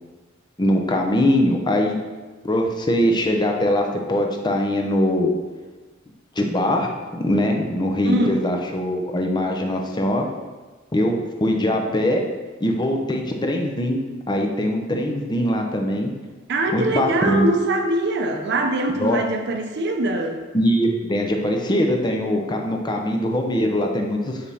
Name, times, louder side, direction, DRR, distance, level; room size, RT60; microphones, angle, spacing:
voice 1, 0.6-2.0 2.4-5.3 6.4-10.3 10.9-12.2 12.6-14.0 14.3-16.1 16.7-17.5 19.0-19.2 20.5-24.4, left 1 dB, 25° left, 2 dB, 0.7 m, -22 dB
voice 2, 8.0-8.4 16.5-20.4, right 1 dB, 60° right, 4 dB, 0.7 m, -22 dB
5.2 x 4.1 x 5.5 m, 1.3 s
head